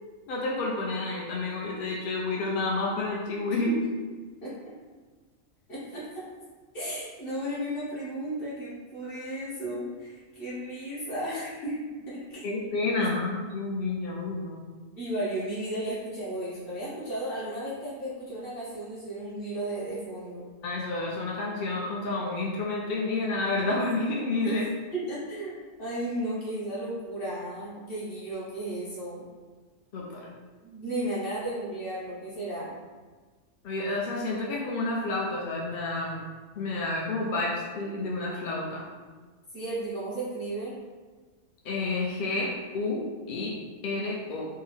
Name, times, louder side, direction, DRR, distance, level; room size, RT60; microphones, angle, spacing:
voice 1, 0.3-3.7 12.4-14.6 20.6-24.6 29.9-30.3 33.6-36.2 36.6-38.9 41.6-43.5 43.8-44.5, left 2 dB, 65° left, -3 dB, 0.5 m, -30 dB
voice 2, 5.7-6.2 6.7-11.8 12.1-12.4 14.9-20.4 24.4-24.6 24.9-29.2 30.6-32.8 39.5-40.8, right 1 dB, 50° left, -8 dB, 1.3 m, -34 dB
3.7 x 2.0 x 3.2 m, 1.4 s
omnidirectional pair, 1.3 m